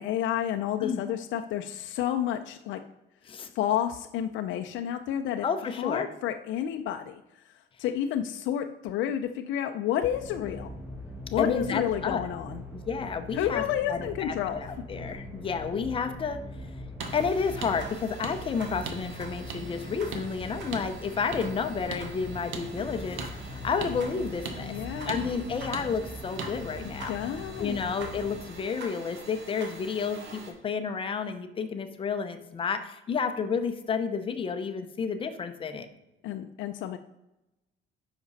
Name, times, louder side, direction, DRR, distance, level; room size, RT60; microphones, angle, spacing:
voice 1, 0.0-2.8 3.5-5.5 5.8-7.2 7.5-10.7 11.3-12.6 13.3-14.6 24.6-25.3 26.8-27.8 36.2-37.0, left 10 dB, 80° left, 6 dB, 0.5 m, -30 dB
voice 2, 5.4-6.1 11.4-12.2 12.7-13.6 13.9-16.4 17.1-24.7 25.1-27.1 27.6-35.9, left 5 dB, 25° left, 8 dB, 0.7 m, -31 dB
sound 1, 10.1-28.5, equal, 10° right, 1.6 m, -41 dB
sound 2, 17.0-30.5, right 2 dB, 65° right, 2.2 m, -45 dB
sound 3, 17.0-17.1 17.6-17.7 18.2-18.3 18.9-19.0 19.5-19.6 20.1-20.2 20.7-20.9 21.3-21.4 21.9-22.0 22.5-22.7 23.2-23.3 23.8-23.9 24.5-24.6 25.1-25.2 25.7-25.9 26.4-26.5, right 5 dB, 90° right, 1.3 m, -36 dB
10.0 x 6.1 x 4.1 m, 0.93 s
cardioid pair, 180°, 20 cm